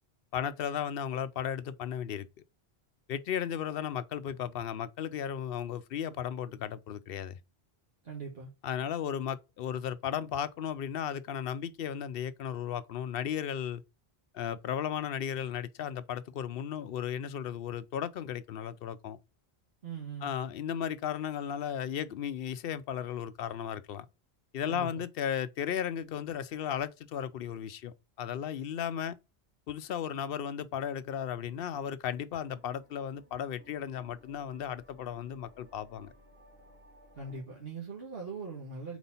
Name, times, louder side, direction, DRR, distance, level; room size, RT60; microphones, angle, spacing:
voice 1, 0.3-2.3 3.1-7.4 8.6-13.8 14.3-19.2 20.2-24.0 24.5-29.2 29.7-36.1, left 9 dB, 65° left, 0.7 m, -35 dB
voice 2, 8.0-8.5 19.8-20.3 24.7-25.0 37.1-39.0, right 4 dB, 65° right, 1.5 m, -41 dB
sound 1, 32.4-37.4, right 1 dB, 45° right, 2.4 m, -60 dB
4.5 x 4.0 x 5.5 m
omnidirectional pair, 1.1 m